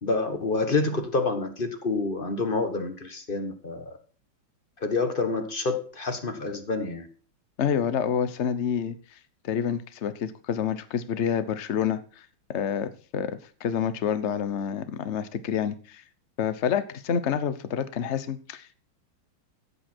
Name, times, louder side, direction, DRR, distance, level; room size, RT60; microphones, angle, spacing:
voice 1, 0.0-4.0 4.8-7.1, left 3 dB, 30° left, 8 dB, 1.3 m, -28 dB
voice 2, 7.6-8.9 9.4-16.0 16.4-18.7, left 8 dB, 45° left, 13 dB, 0.9 m, -28 dB
14.0 x 8.5 x 4.5 m, 0.40 s
omnidirectional pair, 2.3 m